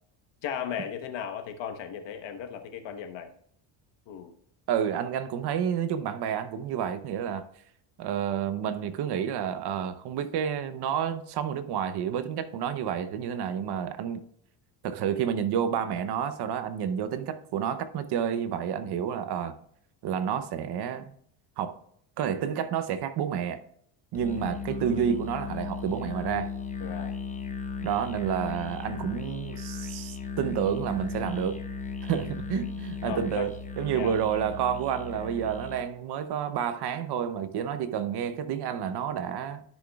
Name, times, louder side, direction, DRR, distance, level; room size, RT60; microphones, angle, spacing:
voice 1, 0.4-3.3 4.1-4.3 26.8-27.2 33.0-33.5 33.9-34.1, left 8 dB, 60° left, 1.3 m, -36 dB
voice 2, 4.7-7.5 8.0-14.2 14.8-19.5 20.0-21.1 21.6-21.8 22.2-23.6 24.1-26.5 27.8-31.6 32.0-39.6, right 8 dB, 55° right, 0.9 m, -30 dB
Musical instrument, 24.1-35.9, left 5 dB, 15° left, 0.7 m, -36 dB
14.0 x 6.3 x 2.3 m
cardioid pair, 125°, 48 cm